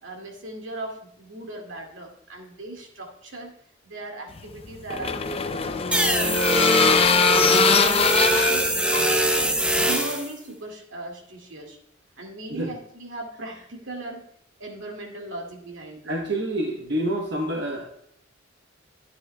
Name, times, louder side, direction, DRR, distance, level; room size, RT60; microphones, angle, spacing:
voice 1, 0.0-3.5 3.8-6.4 6.8-11.8 12.2-14.2 14.6-16.3, right 1 dB, 85° right, 2 dB, 2.2 m, -38 dB
sound 1, 4.4-9.9, left 5 dB, 30° left, 0.5 m, -22 dB
sound 2, 5.9-10.3, right 1 dB, 5° right, 1.0 m, -22 dB
voice 2, 16.0-17.9, right 1 dB, 60° right, 0 dB, 1.0 m, -27 dB
12.0 x 9.7 x 2.2 m, 0.69 s
head